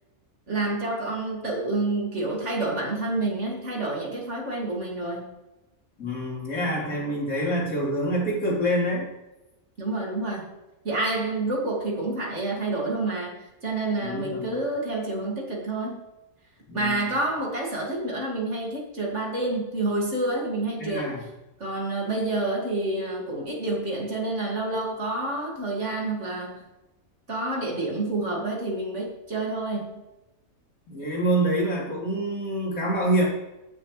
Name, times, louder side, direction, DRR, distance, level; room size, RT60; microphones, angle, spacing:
voice 1, 0.5-5.4 9.8-10.5 10.8-16.0 16.7-21.2 21.6-26.7 27.3-30.0, right 2 dB, 55° right, -1 dB, 2.7 m, -28 dB
voice 2, 6.0-9.1 14.0-14.6 16.7-17.2 20.8-21.2 30.9-33.2, right 1 dB, 80° left, -5 dB, 4.1 m, -26 dB
15.0 x 6.8 x 3.3 m, 0.99 s
omnidirectional pair, 1.4 m